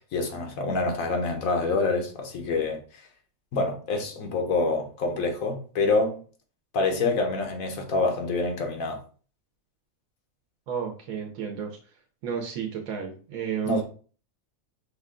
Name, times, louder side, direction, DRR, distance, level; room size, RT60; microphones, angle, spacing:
voice 1, 0.1-2.8 3.5-6.2 6.7-9.0 13.6-13.8, left 3 dB, 75° left, 1.4 m, -26 dB
voice 2, 10.7-11.8 12.2-13.8, right 7 dB, 85° right, 1.2 m, -32 dB
5.5 x 2.2 x 3.6 m
omnidirectional pair, 1.4 m